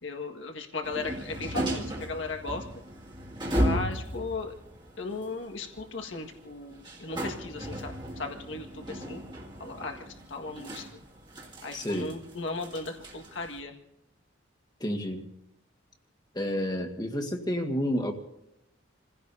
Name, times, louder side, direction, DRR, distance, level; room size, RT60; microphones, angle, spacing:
voice 1, 0.0-2.6 3.5-4.5 5.0-9.2 9.6-10.8 11.6-13.7, left 3 dB, 75° left, 3 dB, 1.7 m, -36 dB
sound 1, 0.8-13.6, equal, 25° right, 2.2 m, -36 dB
voice 2, 11.7-12.1 14.8-15.3 16.3-18.1, equal, 20° left, 3 dB, 1.6 m, -30 dB
29.0 x 16.0 x 2.7 m, 0.86 s
head